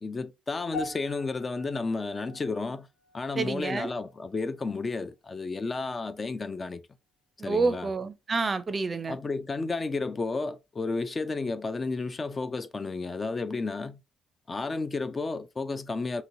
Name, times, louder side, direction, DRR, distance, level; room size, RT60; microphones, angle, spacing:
voice 1, 0.0-2.9 3.1-6.8 7.4-7.9 9.1-14.0 14.5-16.2, left 3 dB, 30° left, 0.3 m, -32 dB
sound 1, 0.7-5.1 5.4-5.8 6.4-6.5, left 3 dB, 65° left, 1.2 m, -45 dB
voice 2, 3.4-3.9 7.4-9.2, right 4 dB, 35° right, 0.5 m, -28 dB
2.8 x 2.8 x 2.7 m
cardioid pair, 90°, 0 cm